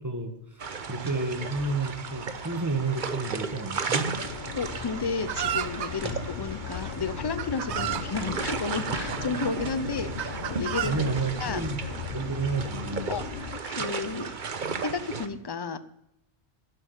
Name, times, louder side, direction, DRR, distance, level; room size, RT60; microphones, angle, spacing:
voice 1, 0.0-4.1 6.0-6.2 7.7-7.8 10.8-11.8 12.1-13.1, right 3 dB, 15° right, 8 dB, 1.3 m, -31 dB
sound 1, 0.6-15.3, right 5 dB, 50° right, 1.1 m, -35 dB
sound 2, 4.1-13.6, left 8 dB, 60° left, 0.8 m, -38 dB
voice 2, 4.6-11.0 11.4-12.0 13.1-14.3 14.8-15.8, left 4 dB, 30° left, 14 dB, 0.6 m, -32 dB
Chicken rooster, 5.3-5.9 6.8-6.9 7.4-8.1 8.9-9.5 10.2-10.9, right 10 dB, 80° right, 1.0 m, -31 dB
11.5 x 7.8 x 9.5 m, 0.78 s
omnidirectional pair, 1.1 m